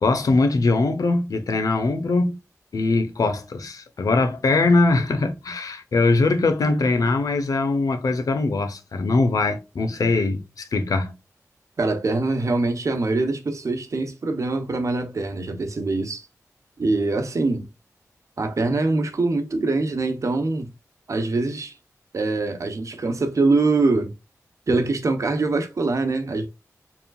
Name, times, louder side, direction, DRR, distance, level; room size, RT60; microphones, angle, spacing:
voice 1, 0.0-2.4 2.7-11.1, left 3 dB, 85° left, 0.9 m, -21 dB
voice 2, 11.8-16.3 16.8-17.7 18.4-20.7 21.1-21.7 22.1-24.1 24.7-26.5, right 3 dB, 65° right, 0.9 m, -23 dB
4.7 x 3.7 x 2.3 m
wide cardioid pair, 90°, 6 cm